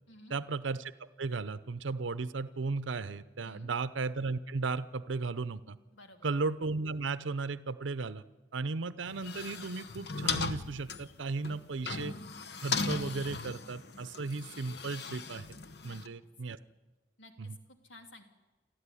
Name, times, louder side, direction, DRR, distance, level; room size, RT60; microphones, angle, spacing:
voice 1, 0.3-5.8 6.2-8.2 8.5-12.1 12.6-15.5 15.8-16.6 17.4-17.6, right 3 dB, 85° right, 14 dB, 0.7 m, -35 dB
voice 2, 5.9-6.3 15.8-16.3 17.2-18.2, left 1 dB, 85° left, 5 dB, 2.8 m, -54 dB
sound 1, 9.1-16.1, left 4 dB, 60° left, 1.0 m, -38 dB
28.5 x 13.0 x 9.9 m, 1.2 s
head